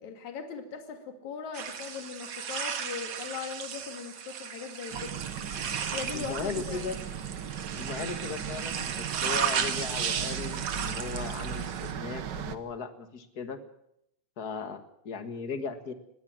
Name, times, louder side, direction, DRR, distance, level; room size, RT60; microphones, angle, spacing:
voice 1, 0.0-5.1 5.9-6.8, left 6 dB, 70° left, 5 dB, 3.5 m, -39 dB
sound 1, 1.5-11.9, right 7 dB, 55° right, 2.4 m, -35 dB
sound 2, 4.9-12.6, right 8 dB, 85° right, 0.9 m, -37 dB
voice 2, 6.1-7.0 7.7-13.6 14.4-15.9, left 5 dB, 40° left, 9 dB, 1.6 m, -37 dB
20.5 x 17.0 x 7.6 m, 0.78 s
omnidirectional pair, 3.5 m